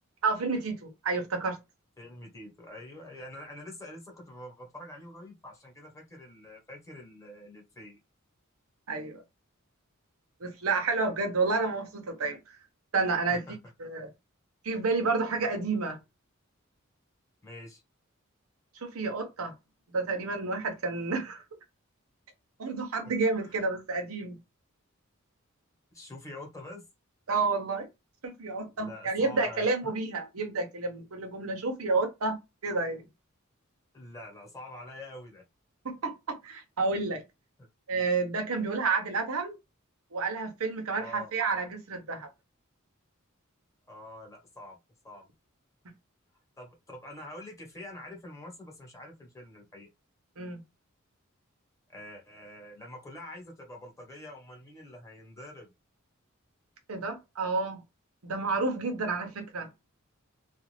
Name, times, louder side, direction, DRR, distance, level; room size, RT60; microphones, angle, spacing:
voice 1, 0.2-1.6 8.9-9.2 10.4-12.4 12.9-13.4 13.8-14.1 14.6-16.0 18.8-19.5 19.9-21.4 22.6-24.4 27.3-27.9 28.2-33.0 35.8-37.2 37.9-39.6 40.1-42.3 50.4-50.6 56.9-57.8 58.2-59.7, right 3 dB, 90° right, 0.8 m, -30 dB
voice 2, 2.0-8.0 13.3-13.6 17.4-17.8 23.0-23.1 23.4-23.7 25.9-26.8 28.7-29.7 33.9-35.4 37.6-37.7 38.6-38.8 41.0-41.3 43.9-44.8 45.0-45.3 46.6-49.9 51.9-55.7, left 1 dB, 15° left, 1.0 m, -46 dB
2.5 x 2.4 x 3.2 m
head